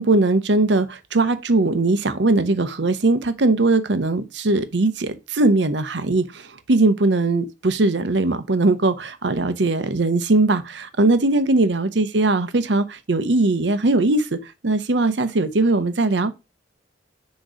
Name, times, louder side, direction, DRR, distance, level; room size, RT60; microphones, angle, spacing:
voice 1, 0.0-16.4, right 2 dB, 75° right, 0.8 m, -20 dB
6.4 x 3.0 x 5.0 m
head